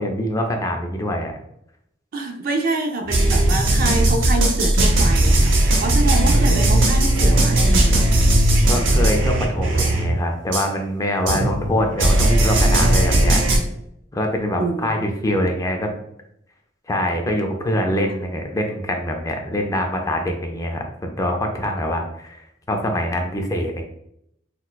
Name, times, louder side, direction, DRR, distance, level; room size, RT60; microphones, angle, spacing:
voice 1, 0.0-1.3 8.7-13.7 14.1-15.9 16.9-22.4 22.7-23.8, left 1 dB, 20° left, 3 dB, 0.4 m, -24 dB
voice 2, 2.1-8.1 14.6-15.5, right 2 dB, 50° right, 4 dB, 0.4 m, -26 dB
sound 1, 3.1-10.2 10.5-10.7 11.3-13.6, right 1 dB, 80° right, 0.7 m, -17 dB
4.0 x 2.2 x 2.2 m, 0.76 s
head